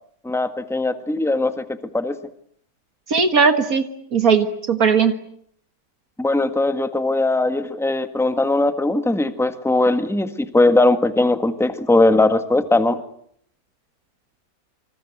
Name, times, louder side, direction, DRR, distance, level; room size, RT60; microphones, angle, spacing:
voice 1, 0.2-2.2 6.2-13.0, left 2 dB, ahead, 9 dB, 1.6 m, -19 dB
voice 2, 3.1-3.8 4.1-5.1, right 5 dB, 70° right, 8 dB, 2.1 m, -17 dB
26.5 x 26.5 x 8.1 m, 0.66 s
omnidirectional pair, 1.6 m